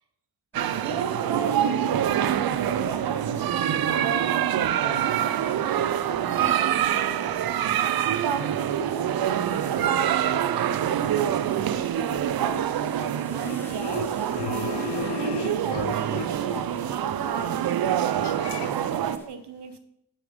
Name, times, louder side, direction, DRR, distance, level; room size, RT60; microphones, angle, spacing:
sound 1, 0.5-19.3, equal, 5° left, 1.5 m, -44 dB
sound 2, 0.5-19.2, right 10 dB, 65° right, 0.5 m, -26 dB
voice 1, 0.8-7.7 8.2-9.2 9.7-14.2 15.1-18.0 18.6-19.8, right 6 dB, 85° right, 10 dB, 1.1 m, -35 dB
voice 2, 14.4-16.2 18.2-18.7, left 9 dB, 85° left, 13 dB, 0.7 m, -34 dB
8.4 x 6.9 x 5.2 m, 0.80 s
wide cardioid pair, 125°, 39 cm